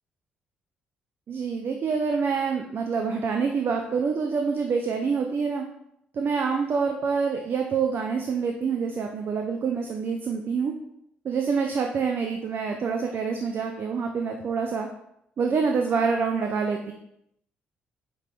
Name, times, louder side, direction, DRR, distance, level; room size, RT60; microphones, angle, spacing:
voice 1, 1.3-5.6 6.1-10.7 11.2-14.9 15.4-16.9, right 5 dB, 40° right, 3 dB, 0.4 m, -26 dB
4.8 x 3.5 x 2.2 m, 0.77 s
figure-of-eight pair, 45°, 5 cm